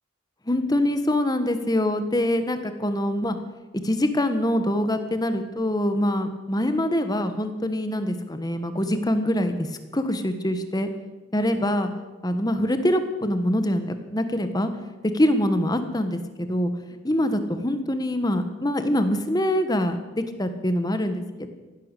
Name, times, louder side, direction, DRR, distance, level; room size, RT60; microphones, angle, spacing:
voice 1, 0.5-3.4 3.8-9.7 9.9-10.9 11.3-11.9 12.2-14.7 15.1-16.7 17.0-21.5, left 1 dB, 20° left, 9 dB, 1.3 m, -24 dB
15.5 x 11.5 x 8.3 m, 1.2 s
head